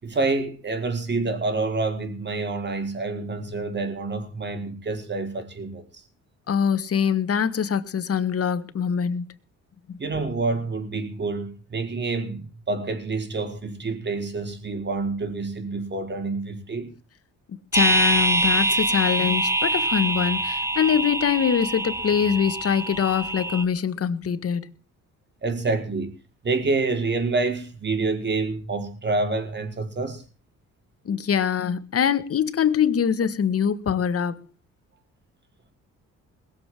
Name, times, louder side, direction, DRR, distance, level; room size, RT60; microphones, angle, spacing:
voice 1, 0.0-6.0 10.0-16.9 25.4-26.1 26.4-30.2, right 3 dB, 35° right, 4.9 m, -27 dB
voice 2, 6.5-9.2 9.9-10.0 17.7-24.7 31.1-34.5, left 7 dB, 50° left, 1.7 m, -23 dB
sound 1, 17.7-23.6, right 2 dB, 10° right, 1.3 m, -24 dB
21.0 x 7.7 x 7.7 m
cardioid pair, 90°, 30 cm